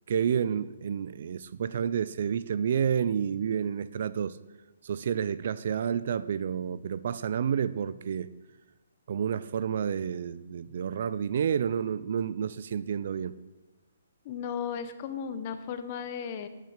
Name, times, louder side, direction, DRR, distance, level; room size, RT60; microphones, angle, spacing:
voice 1, 0.1-4.4 4.8-8.3 9.1-13.3, right 8 dB, 40° right, 16 dB, 0.3 m, -30 dB
voice 2, 14.2-16.5, left 7 dB, 25° left, 10 dB, 0.7 m, -35 dB
8.9 x 8.9 x 6.4 m, 1.1 s
hypercardioid pair, 175°, 0 cm